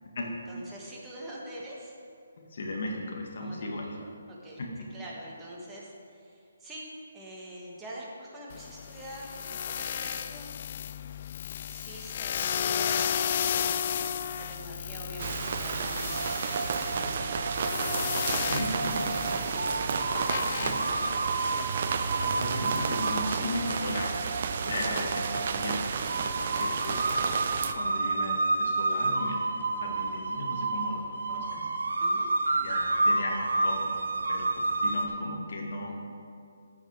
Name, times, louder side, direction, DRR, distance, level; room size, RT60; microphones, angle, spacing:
voice 1, 0.2-1.9 3.4-3.7 4.3-4.6 4.9-6.9 7.1-10.5 11.6-13.9 14.3-17.7 19.3-19.6 20.1-21.1 26.1-26.4 32.0-32.3, right 1 dB, 10° right, -5 dB, 1.7 m, -44 dB
voice 2, 2.4-4.0 4.6-4.7 18.4-19.2 20.6-20.8 22.2-24.2 24.7-25.8 26.5-27.1 27.7-29.4 29.8-31.7 32.5-36.0, left 2 dB, 60° left, -1 dB, 1.9 m, -36 dB
sound 1, 8.5-23.1, left 8 dB, 40° left, 0.4 m, -34 dB
sound 2, 15.2-27.7, right 6 dB, 50° right, 0.6 m, -32 dB
sound 3, 16.1-35.1, right 2 dB, 70° right, 0.9 m, -31 dB
13.0 x 5.9 x 4.9 m, 2.4 s
figure-of-eight pair, 150°, 0 cm